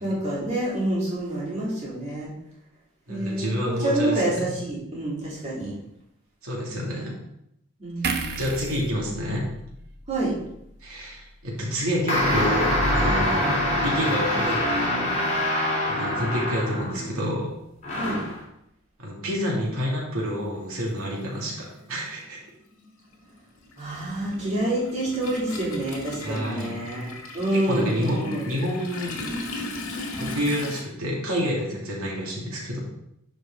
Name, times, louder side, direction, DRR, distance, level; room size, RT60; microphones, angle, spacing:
voice 1, 0.0-2.3 3.1-5.7 7.8-8.4 10.1-10.3 18.0-18.2 23.8-28.5, right 1 dB, 30° right, -7 dB, 3.5 m, -27 dB
voice 2, 3.1-4.1 4.4-4.5 6.4-7.1 8.3-9.4 10.8-13.6 13.8-14.8 15.9-17.5 19.0-22.4 26.2-26.7 27.5-29.1 30.2-32.8, equal, 85° right, -4 dB, 2.6 m, -28 dB
sound 1, 8.0-11.4 11.8-11.9, right 4 dB, 50° right, 0.8 m, -35 dB
sound 2, 12.1-17.1 17.8-18.4, left 1 dB, 35° left, 3.4 m, -24 dB
Toilet flush, 20.3-20.4 21.7-21.9 22.2-30.8, left 2 dB, 75° left, 1.9 m, -37 dB
11.0 x 5.3 x 3.8 m, 0.79 s
head